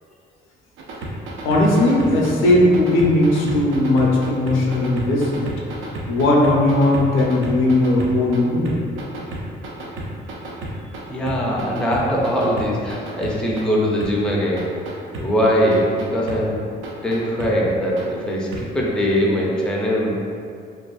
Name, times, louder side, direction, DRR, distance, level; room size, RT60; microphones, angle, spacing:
sound 1, 0.8-8.4 8.7-11.0 11.3-13.6 14.0-14.1 14.6-15.3 15.7-16.4 16.8-17.5 18.0-18.1 18.5-18.6 19.1-19.2, right 2 dB, 75° right, 0.5 m, -31 dB
voice 1, 1.4-5.5 6.1-8.7, left 1 dB, 80° left, -2 dB, 0.5 m, -17 dB
voice 2, 11.1-14.7 15.2-16.6 17.0-20.1, equal, 5° left, -4 dB, 0.4 m, -21 dB
2.5 x 2.3 x 2.3 m, 2.3 s
cardioid pair, 90°, 20 cm